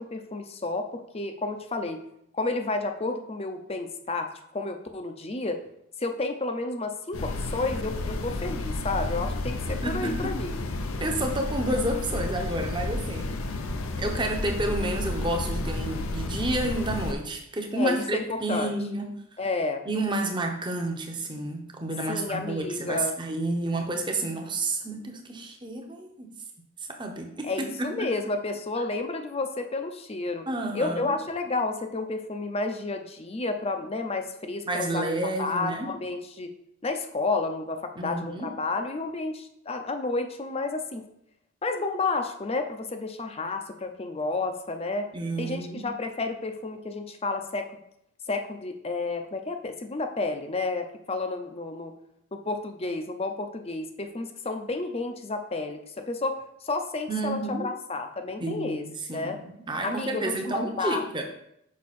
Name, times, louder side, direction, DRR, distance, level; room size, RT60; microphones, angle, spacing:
voice 1, 0.0-2.0 2.3-5.6 6.0-10.6 17.8-18.7 19.4-19.8 22.1-23.1 27.4-30.5 30.7-35.1 35.4-36.5 36.8-41.0 41.6-45.1 45.4-47.7 48.3-51.9 52.3-58.8 59.1-59.4 59.8-61.0, left 3 dB, 30° left, 6 dB, 0.6 m, -31 dB
sound 1, 7.1-17.1, left 2 dB, 80° left, 0.7 m, -31 dB
voice 2, 9.8-10.3 11.0-13.3 14.0-19.1 19.9-26.3 26.9-28.1 30.5-31.2 34.7-35.9 38.0-38.5 45.1-45.8 57.1-57.7 58.4-61.3, right 2 dB, 20° right, 3 dB, 0.9 m, -30 dB
6.4 x 5.5 x 4.2 m, 0.76 s
head